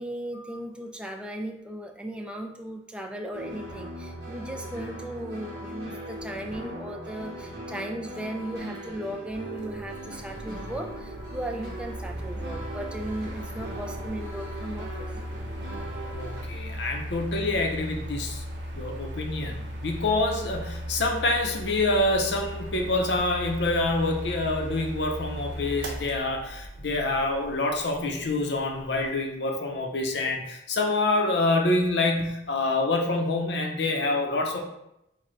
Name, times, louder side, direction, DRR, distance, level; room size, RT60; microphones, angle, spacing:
voice 1, 0.0-15.1, right 1 dB, 5° right, 2 dB, 0.3 m, -36 dB
sound 1, 3.3-16.4, right 1 dB, 55° right, 1.3 m, -39 dB
Mechanical fan, 9.5-29.2, equal, 80° right, 0.7 m, -38 dB
voice 2, 16.1-18.4 18.7-34.6, left 2 dB, 70° left, 2 dB, 0.7 m, -26 dB
4.7 x 2.2 x 4.4 m, 0.84 s
head